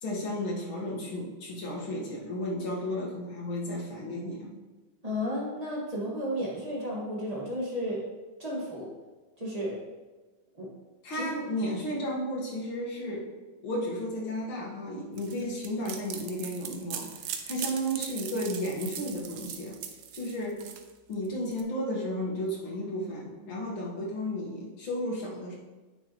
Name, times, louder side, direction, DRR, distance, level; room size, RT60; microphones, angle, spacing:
voice 1, 0.0-4.5 11.0-13.3 13.6-17.1 17.5-19.8 20.1-20.7 21.1-25.5, equal, 85° left, -4 dB, 2.5 m, -33 dB
voice 2, 5.0-8.0 8.4-8.9 9.4-9.8 10.6-10.7 11.1-11.3, equal, 20° right, -5 dB, 1.9 m, -33 dB
sound 1, 15.2-21.6, right 8 dB, 70° right, 1.3 m, -40 dB
8.9 x 6.5 x 3.1 m, 1.2 s
omnidirectional pair, 2.2 m